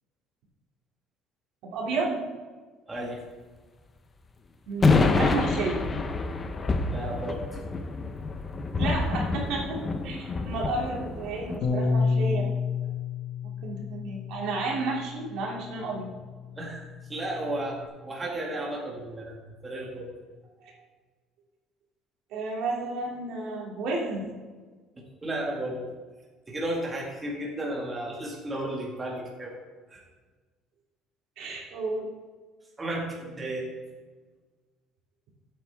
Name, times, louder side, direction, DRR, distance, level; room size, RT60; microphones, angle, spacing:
voice 1, 1.6-2.2 4.7-5.8 8.8-9.8 10.0-12.5 13.4-16.1 22.3-24.2 31.4-32.1, right 3 dB, 65° right, -2 dB, 2.8 m, -31 dB
voice 2, 2.9-3.2 6.9-7.4 16.6-19.4 19.6-20.1 20.6-20.7 25.2-25.8 26.5-29.5 29.9-30.0 32.8-33.7, right 1 dB, 15° right, -2 dB, 2.0 m, -33 dB
sound 1, 4.8-11.6, left 3 dB, 20° left, 0.8 m, -27 dB
Bass guitar, 11.6-17.9, left 5 dB, 55° left, 1.2 m, -31 dB
15.0 x 8.3 x 3.6 m, 1.4 s
cardioid pair, 145°, 0 cm